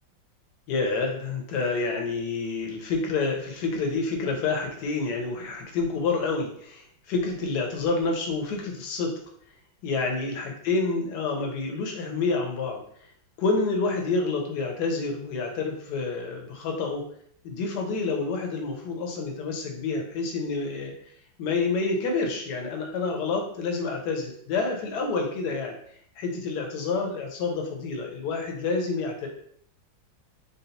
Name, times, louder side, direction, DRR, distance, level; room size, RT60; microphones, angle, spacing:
voice 1, 0.7-9.2 9.8-12.8 13.4-17.0 17.4-20.9 21.4-25.7 26.2-29.3, left 4 dB, 65° left, 2 dB, 1.2 m, -28 dB
4.0 x 2.0 x 3.9 m, 0.63 s
omnidirectional pair, 2.1 m